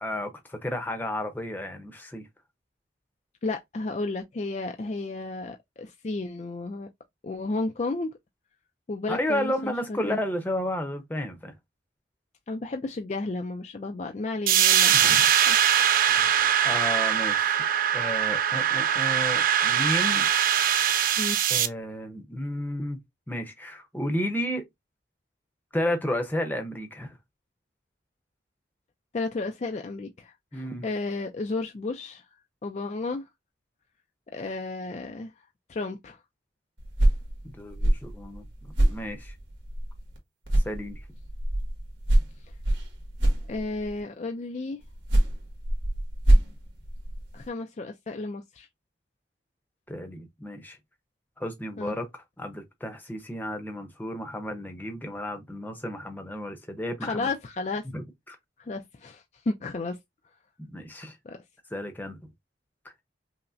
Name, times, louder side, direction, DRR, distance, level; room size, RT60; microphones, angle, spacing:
voice 1, 0.0-2.3 9.1-11.5 14.9-15.3 16.6-17.6 17.9-20.3 21.5-23.0 23.3-24.6 25.7-27.2 30.5-30.9 37.4-39.3 40.6-41.0 49.9-50.8 51.4-57.3 57.9-58.4 60.6-61.2 61.7-62.2, left 1 dB, 10° left, 0.7 m, -32 dB
voice 2, 3.4-6.9 7.2-8.1 8.9-10.2 12.5-15.6 16.1-16.5 17.1-17.2 21.2-21.4 29.1-32.3 32.6-33.2 34.3-35.3 35.7-36.2 43.5-44.8 47.3-48.7 51.8-52.0 57.0-57.8 58.6-60.0 61.3-61.4, left 3 dB, 35° left, 0.3 m, -33 dB
sound 1, 14.5-21.7, right 9 dB, 45° right, 0.4 m, -22 dB
sound 2, 36.8-40.2 40.5-44.0 44.8-47.5, right 1 dB, 85° right, 1.5 m, -25 dB
5.4 x 2.1 x 2.6 m
head